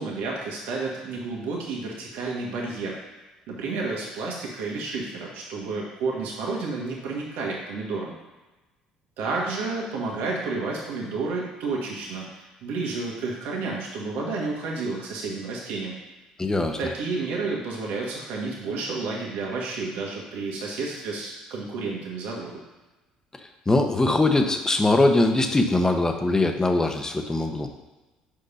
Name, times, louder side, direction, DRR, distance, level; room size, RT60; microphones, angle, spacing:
voice 1, 0.0-3.0 3.5-8.1 9.2-16.0 16.8-22.6, right 3 dB, 70° right, -2 dB, 1.7 m, -31 dB
voice 2, 16.4-16.8 23.7-27.7, left 2 dB, 20° left, 5 dB, 1.1 m, -21 dB
6.5 x 5.2 x 5.6 m, 1.1 s
hypercardioid pair, 60°, 3 cm